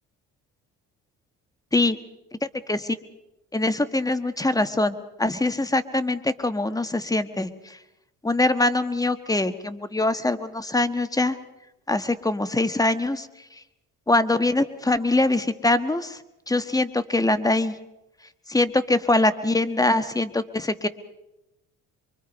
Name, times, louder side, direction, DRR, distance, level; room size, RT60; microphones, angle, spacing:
voice 1, 3.5-7.5 8.2-11.4 11.9-13.3 14.1-16.2 16.5-17.7 18.5-20.9, left 2 dB, 10° left, 11 dB, 1.4 m, -23 dB
25.0 x 23.5 x 5.3 m, 0.92 s
cardioid pair, 90°, 32 cm